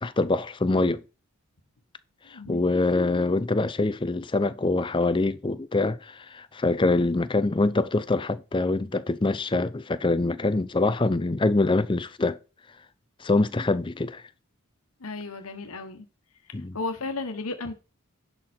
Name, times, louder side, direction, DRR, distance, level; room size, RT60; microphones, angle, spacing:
voice 1, 0.0-1.0 2.3-12.4 13.2-14.2 16.5-16.8, left 2 dB, 20° left, 0.5 m, -24 dB
voice 2, 2.3-2.6 15.0-16.1 16.4-17.7, left 3 dB, 80° left, 1.2 m, -34 dB
11.0 x 5.7 x 4.4 m
head